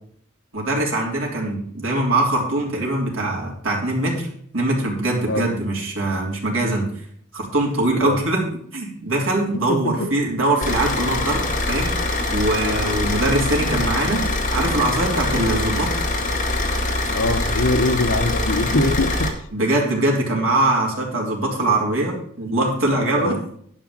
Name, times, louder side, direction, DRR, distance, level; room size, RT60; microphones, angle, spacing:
voice 1, 0.5-4.3 4.5-6.8 7.3-8.4 8.7-11.9 12.3-14.2 14.5-15.9 19.5-23.4, right 1 dB, 70° right, -2 dB, 3.5 m, -22 dB
voice 2, 9.7-10.1 15.5-15.6 17.1-19.3 23.1-23.4, left 2 dB, 65° left, 7 dB, 1.1 m, -22 dB
Car / Idling, 10.6-19.3, left 2 dB, 35° left, 1.6 m, -23 dB
11.0 x 5.1 x 7.5 m, 0.63 s
head